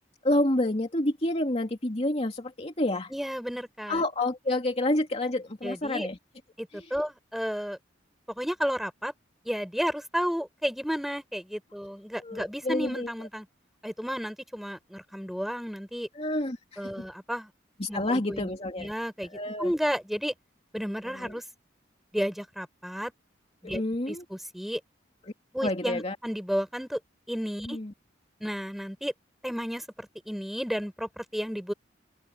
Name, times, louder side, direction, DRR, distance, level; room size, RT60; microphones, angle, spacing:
voice 1, 0.2-3.1 3.9-6.2 12.2-13.1 16.2-16.8 17.8-18.9 19.3-19.7 21.1-21.4 23.6-24.2 25.6-26.2 27.7-27.9, left 1 dB, 35° left, 2.6 m, -28 dB
voice 2, 3.1-4.0 5.6-6.1 6.6-7.8 8.4-9.1 9.4-13.4 13.8-16.1 16.8-17.5 17.9-18.5 18.8-19.3 19.6-20.3 20.7-21.4 22.1-23.1 23.6-23.8 24.1-24.8 25.5-27.0 27.3-27.8 28.4-29.1 29.4-31.7, equal, ahead, 5.0 m, -32 dB
open air
head